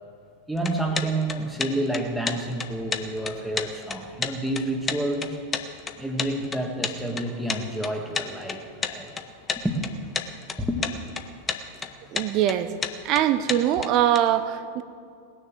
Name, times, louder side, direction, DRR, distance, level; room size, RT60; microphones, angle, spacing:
voice 1, 0.5-5.4 6.0-9.1 9.6-9.9 10.6-10.8, right 1 dB, 5° right, 2 dB, 1.8 m, -29 dB
sound 1, 0.6-14.2, left 5 dB, 20° left, 1.0 m, -31 dB
voice 2, 12.1-12.7 13.0-14.8, right 11 dB, 40° right, 12 dB, 0.7 m, -22 dB
19.5 x 6.7 x 7.5 m, 2.3 s
figure-of-eight pair, 90°, 0 cm